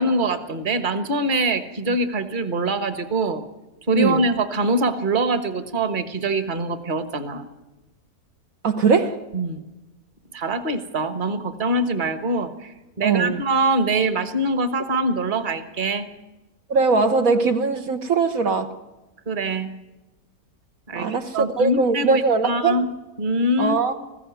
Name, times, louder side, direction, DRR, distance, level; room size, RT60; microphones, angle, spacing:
voice 1, 0.0-3.4 3.9-7.5 9.3-9.6 10.3-16.1 19.3-19.7 20.9-22.9 23.2-23.8, right 2 dB, 35° right, 1.5 m, -24 dB
voice 2, 8.6-9.2 13.0-13.4 16.7-18.7 20.9-22.8 23.6-23.9, right 4 dB, 65° right, 1.4 m, -20 dB
20.5 x 15.5 x 9.4 m
omnidirectional pair, 1.7 m